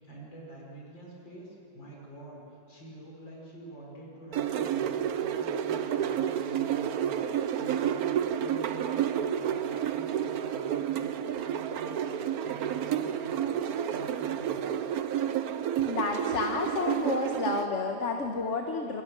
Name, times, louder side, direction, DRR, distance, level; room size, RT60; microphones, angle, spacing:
voice 1, 0.0-2.4 2.7-14.9, right 2 dB, 70° left, -3 dB, 6.2 m, -47 dB
sound 1, 4.3-17.7, right 9 dB, 60° right, 1.1 m, -30 dB
voice 2, 15.8-19.0, left 4 dB, 40° left, 3 dB, 1.4 m, -30 dB
27.5 x 22.5 x 6.2 m, 2.9 s
omnidirectional pair, 2.1 m